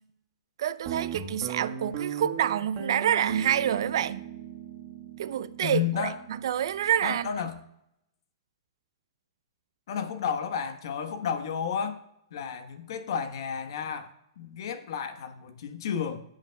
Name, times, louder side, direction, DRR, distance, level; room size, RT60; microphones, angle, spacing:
voice 1, 0.6-4.2 5.2-6.1 6.4-7.3, right 10 dB, 65° right, 0.6 m, -27 dB
Guitar, 0.8-7.5, right 8 dB, 40° right, 1.5 m, -38 dB
voice 2, 5.6-6.2 7.0-7.6 9.9-12.0 12.3-14.1 14.4-16.2, left 7 dB, 65° left, 1.2 m, -32 dB
16.5 x 8.0 x 2.3 m
hypercardioid pair, 145°, 3 cm